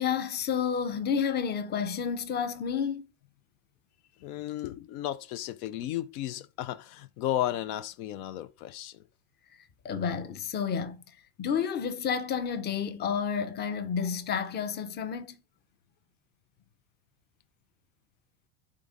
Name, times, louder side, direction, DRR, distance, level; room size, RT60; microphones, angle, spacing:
voice 1, 0.0-3.0 9.8-15.4, left 7 dB, 25° left, 0.5 m, -30 dB
voice 2, 4.2-9.0, left 13 dB, 75° left, 0.6 m, -34 dB
3.8 x 3.6 x 3.8 m
supercardioid pair, 110°, 45 cm